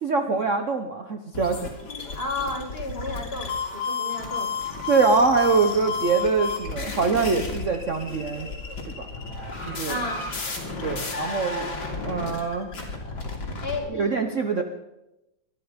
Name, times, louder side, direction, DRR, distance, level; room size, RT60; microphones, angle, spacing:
voice 1, 0.0-1.8 4.9-8.5 8.9-9.1 9.7-10.0 10.8-11.8 12.0-12.7 13.9-14.6, right 4 dB, 50° right, 6 dB, 1.1 m, -24 dB
sound 1, 1.3-13.8, left 4 dB, 55° left, 3.3 m, -32 dB
voice 2, 2.1-4.6 9.8-10.3 13.6-14.4, left 2 dB, 30° left, 4 dB, 2.0 m, -32 dB
20.5 x 12.5 x 5.2 m, 0.91 s
omnidirectional pair, 2.1 m